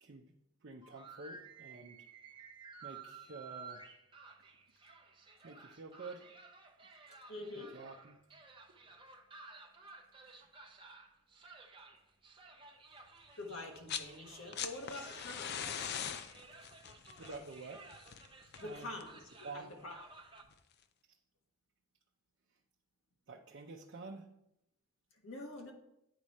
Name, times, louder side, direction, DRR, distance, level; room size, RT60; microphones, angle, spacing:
voice 1, 0.6-2.1 2.8-3.9 5.4-6.4 6.8-6.9 7.5-8.2 17.2-17.8 18.6-18.9 19.4-19.7 23.3-24.3, right 3 dB, 60° right, 0 dB, 0.6 m, -49 dB
sound 1, 0.8-20.4, right 4 dB, 25° right, 0.7 m, -55 dB
voice 2, 7.1-7.7 13.3-15.7 18.6-19.2 19.5-19.9 25.2-25.7, left 2 dB, 85° left, 1 dB, 1.4 m, -46 dB
sound 2, 13.6-14.1 14.4-19.2 20.5-20.6, left 8 dB, 55° left, 0.5 m, -42 dB
9.0 x 4.9 x 4.2 m, 0.80 s
head